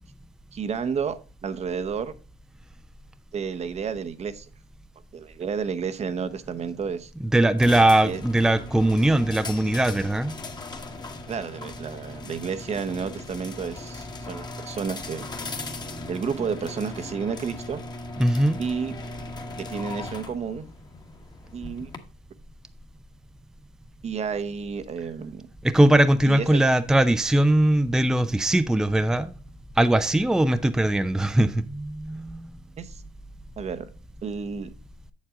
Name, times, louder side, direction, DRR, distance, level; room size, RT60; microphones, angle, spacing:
voice 1, 0.5-2.1 3.3-4.5 5.1-7.1 8.0-8.2 11.3-15.3 16.1-17.8 18.6-19.0 19.6-20.7 21.5-21.9 24.0-25.5 26.2-26.6 32.8-33.0 33.6-33.8 34.2-34.7, right 6 dB, 40° right, 0.9 m, -31 dB
voice 2, 7.3-10.4 15.7-16.1 18.2-18.6 25.6-29.3 29.8-32.6, right 1 dB, 5° right, 0.5 m, -21 dB
sound 1, 7.6-22.0, left 2 dB, 25° left, 1.3 m, -38 dB
7.5 x 7.3 x 3.6 m
cardioid pair, 110°, 17 cm